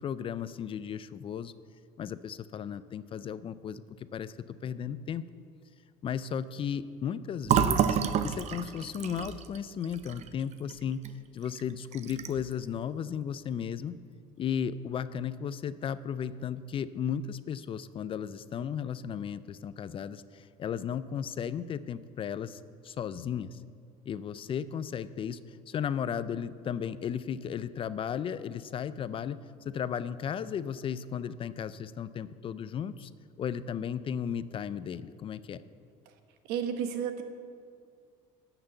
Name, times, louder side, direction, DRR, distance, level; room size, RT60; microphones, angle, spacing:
voice 1, 0.0-1.5 2.0-5.2 6.0-8.0 8.2-11.0 11.3-13.9 14.4-23.6 24.1-33.1 33.4-35.6, left 8 dB, 35° left, 15 dB, 0.4 m, -35 dB
Fill (with liquid), 7.4-11.1 11.5-11.6 11.9-12.5, right 8 dB, 45° right, 0.6 m, -29 dB
voice 2, 36.5-37.2, right 8 dB, 80° right, 7 dB, 1.2 m, -31 dB
12.5 x 6.0 x 7.9 m, 2.2 s
cardioid pair, 115°, 16 cm